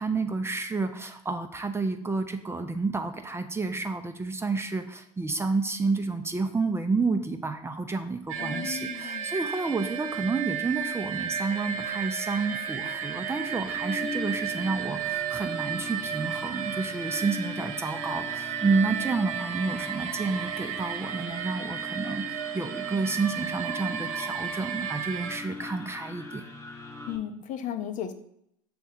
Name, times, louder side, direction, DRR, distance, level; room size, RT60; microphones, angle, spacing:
voice 1, 0.0-26.4, right 3 dB, 15° right, 7 dB, 0.6 m, -30 dB
sound 1, 8.3-25.4, right 8 dB, 75° right, 0.7 m, -33 dB
voice 2, 8.4-9.3 27.1-28.1, left 9 dB, 45° left, 9 dB, 0.7 m, -35 dB
sound 2, 12.9-27.2, left 3 dB, 15° left, 1.1 m, -41 dB
6.2 x 3.4 x 5.6 m, 0.73 s
hypercardioid pair, 80°, 18 cm